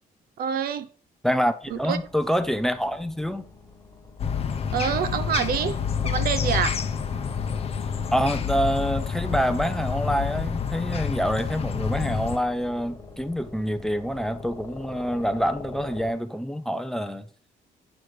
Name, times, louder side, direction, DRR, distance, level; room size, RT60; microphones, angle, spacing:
voice 1, 0.4-0.9 1.7-2.0 4.7-5.8 6.0-6.8, right 8 dB, 70° right, 0.8 m, -26 dB
voice 2, 1.2-3.4 8.1-17.3, equal, 5° left, 0.6 m, -26 dB
sound 1, 1.6-16.1, left 3 dB, 20° left, 1.6 m, -45 dB
sound 2, 4.2-12.4, left 7 dB, 40° left, 0.9 m, -28 dB
9.3 x 6.1 x 5.0 m
cardioid pair, 145°, 16 cm